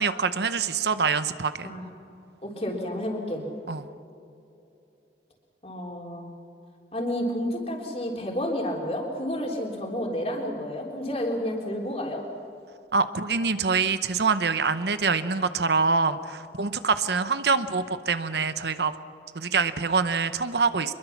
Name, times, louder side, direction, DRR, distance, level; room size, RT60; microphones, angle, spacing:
voice 1, 0.0-1.7 3.7-3.9 12.9-18.9 19.3-20.9, right 5 dB, 75° right, 12 dB, 0.9 m, -25 dB
voice 2, 2.4-3.4 5.6-6.3 6.9-12.2, equal, 35° left, 0 dB, 3.7 m, -30 dB
24.5 x 22.0 x 6.0 m, 2.8 s
head